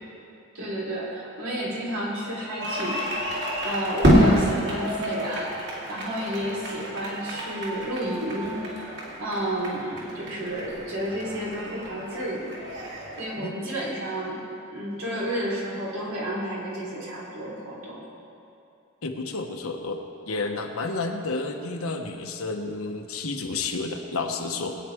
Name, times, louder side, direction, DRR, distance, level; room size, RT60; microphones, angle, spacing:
voice 1, 0.5-3.3 3.6-5.5 5.9-8.9 9.2-12.6 13.2-14.4 14.7-18.0, right 1 dB, 85° right, -5 dB, 3.6 m, -31 dB
sound 1, 2.6-13.3, equal, 55° right, 3.1 m, -27 dB
voice 2, 4.1-4.5 13.4-13.6 19.0-24.8, left 3 dB, 90° left, 3 dB, 1.2 m, -31 dB
20.0 x 9.5 x 3.6 m, 2.5 s
head